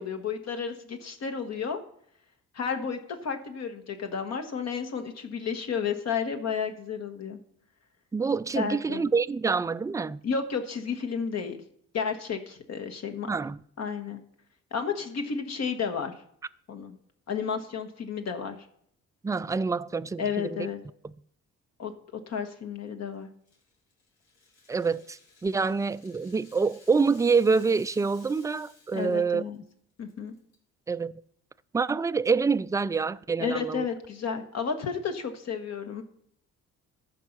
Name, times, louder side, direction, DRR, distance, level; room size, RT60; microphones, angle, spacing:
voice 1, 0.0-1.8 2.5-7.4 8.5-9.0 10.2-11.6 11.9-13.3 13.8-14.2 14.7-16.1 16.7-16.9 17.3-18.6 20.2-20.8 21.8-21.9 22.3-23.3 28.9-29.6 30.0-30.4 33.4-36.0, left 6 dB, 60° left, 1.4 m, -32 dB
voice 2, 8.1-10.2 13.3-13.6 19.2-20.7 24.7-29.4 30.9-31.1 31.7-33.9, right 4 dB, 10° right, 0.3 m, -26 dB
Rattle (instrument), 23.5-29.3 29.5-29.7 30.1-30.5, left 3 dB, 80° left, 3.7 m, -57 dB
14.0 x 5.4 x 6.0 m
cardioid pair, 90°, 30 cm